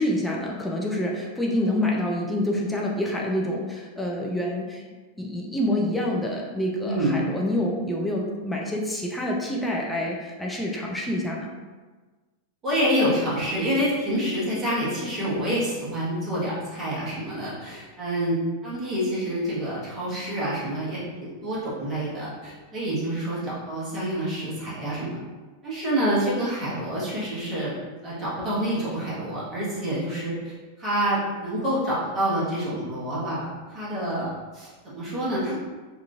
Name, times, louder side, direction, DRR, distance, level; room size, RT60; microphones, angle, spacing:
voice 1, 0.0-4.8 5.2-11.5, left 1 dB, 5° left, -2 dB, 0.4 m, -27 dB
voice 2, 6.8-7.2 12.6-25.2 25.6-27.8 28.0-35.5, equal, 25° right, -9 dB, 1.2 m, -27 dB
2.9 x 2.4 x 2.4 m, 1.3 s
figure-of-eight pair, 90°, 0 cm